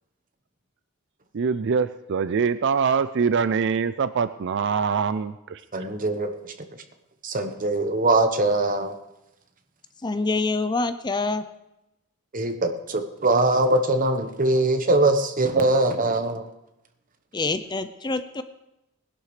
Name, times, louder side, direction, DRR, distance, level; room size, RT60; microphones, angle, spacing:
voice 1, 1.3-5.6, right 5 dB, 55° right, 13 dB, 0.4 m, -24 dB
voice 2, 5.7-6.5 7.2-8.9 12.3-16.4, right 2 dB, 35° right, 6 dB, 1.1 m, -22 dB
voice 3, 10.0-11.4 17.3-18.4, left 3 dB, 20° left, 11 dB, 0.4 m, -26 dB
20.0 x 11.5 x 3.3 m, 0.90 s
head